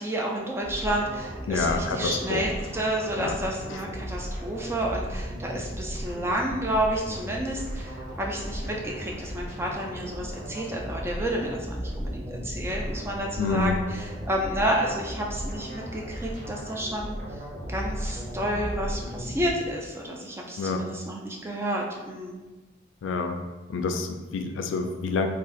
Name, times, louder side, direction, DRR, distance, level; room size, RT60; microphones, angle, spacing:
voice 1, 0.0-17.4 17.7-22.4, right 1 dB, 15° right, -1 dB, 0.3 m, -30 dB
sound 1, 0.6-19.5, equal, 35° right, 0.8 m, -36 dB
voice 2, 1.5-2.4 3.2-3.3 13.4-13.8 20.6-20.9 23.0-23.4 23.7-25.3, left 4 dB, 90° left, 5 dB, 0.3 m, -27 dB
2.4 x 2.4 x 3.8 m, 1.2 s
head